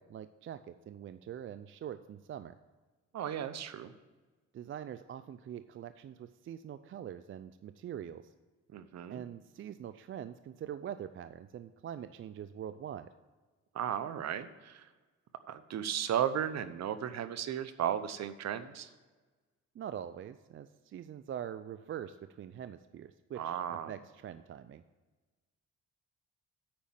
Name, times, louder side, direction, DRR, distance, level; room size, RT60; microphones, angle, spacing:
voice 1, 0.0-2.6 4.5-8.3 9.1-13.1 19.7-24.8, right 9 dB, 45° right, 12 dB, 0.4 m, -44 dB
voice 2, 3.1-3.9 8.7-9.2 13.7-14.9 15.5-18.9 23.4-23.9, right 9 dB, 60° right, 12 dB, 0.8 m, -35 dB
8.7 x 5.3 x 7.3 m, 1.3 s
cardioid pair, 90°, 30 cm